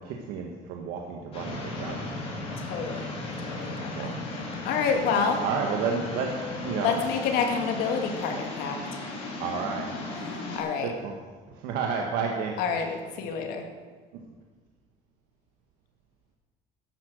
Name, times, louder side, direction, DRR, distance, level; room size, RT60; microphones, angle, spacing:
voice 1, 0.0-2.2 3.9-4.1 5.4-6.3 6.6-7.0 9.4-9.9 10.8-11.1 11.5-12.6, right 5 dB, 70° right, 1 dB, 1.6 m, -31 dB
sound 1, 1.3-10.6, left 2 dB, 35° left, 3.7 m, -36 dB
voice 2, 2.6-4.1 4.6-5.4 6.8-9.0 10.2-10.9 12.6-13.7, left 6 dB, 65° left, 4 dB, 2.3 m, -29 dB
13.0 x 10.5 x 6.4 m, 1.5 s
cardioid pair, 160°, 17 cm